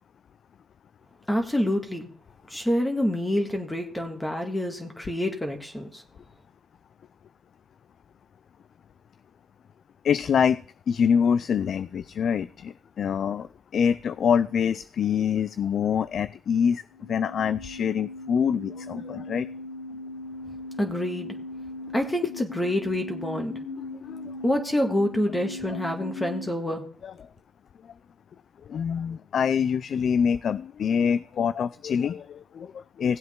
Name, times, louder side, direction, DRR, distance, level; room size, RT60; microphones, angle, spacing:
voice 1, 1.3-2.1 2.5-6.0 20.8-21.4 21.9-23.6 24.4-26.8, left 1 dB, 10° left, 4 dB, 1.9 m, -27 dB
voice 2, 10.0-16.8 17.1-19.5 23.9-24.3 25.7-25.8 27.0-27.1 28.7-33.2, left 7 dB, 60° left, 15 dB, 0.4 m, -25 dB
sound 1, 16.9-26.5, left 2 dB, 80° left, 3.2 m, -39 dB
17.0 x 7.8 x 3.7 m, 0.43 s
cardioid pair, 90°, 0 cm